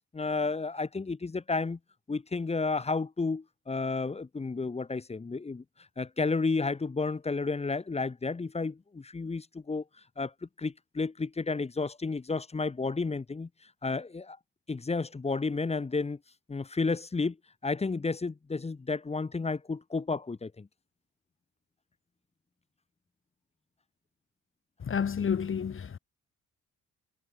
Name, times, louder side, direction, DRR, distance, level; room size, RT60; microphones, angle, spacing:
voice 1, 0.1-1.8 2.1-5.6 6.0-9.8 10.2-13.5 13.8-14.4 14.7-16.2 16.5-17.4 17.6-20.7, left 3 dB, 20° left, 1.1 m, -31 dB
voice 2, 24.8-26.0, left 7 dB, 45° left, 2.2 m, -30 dB
cardioid pair, 90°, 30 cm